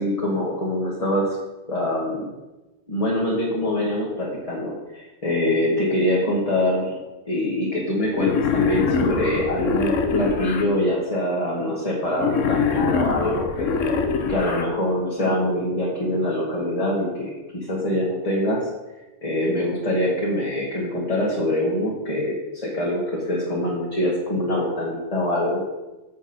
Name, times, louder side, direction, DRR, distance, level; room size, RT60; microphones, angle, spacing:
voice 1, 0.0-1.3 1.7-2.3 2.9-7.0 7.3-13.7 14.3-18.6 19.2-25.6, left 1 dB, 30° left, -5 dB, 1.5 m, -24 dB
Wild animals, 8.1-10.6 12.1-14.6, left 5 dB, 75° left, 1.2 m, -23 dB
8.7 x 7.1 x 4.3 m, 1.1 s
omnidirectional pair, 1.3 m